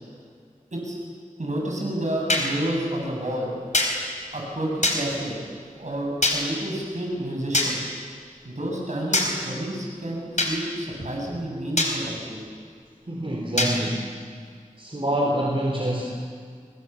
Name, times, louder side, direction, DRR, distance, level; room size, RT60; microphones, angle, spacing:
voice 1, 1.4-3.5 4.3-5.4 5.8-7.8 8.4-12.4, right 1 dB, 60° right, -1 dB, 7.9 m, -30 dB
sound 1, 2.3-2.5 3.7-3.9 4.8-5.0 6.2-6.4 7.5-7.7 9.1-9.3 10.4-10.5 11.8-11.9 13.6-13.7, left 2 dB, 60° left, 4.4 m, -21 dB
voice 2, 13.0-14.1 14.8-16.0, right 1 dB, 40° right, -1 dB, 3.7 m, -26 dB
29.5 x 22.5 x 7.2 m, 2.1 s
wide cardioid pair, 60°, 14 cm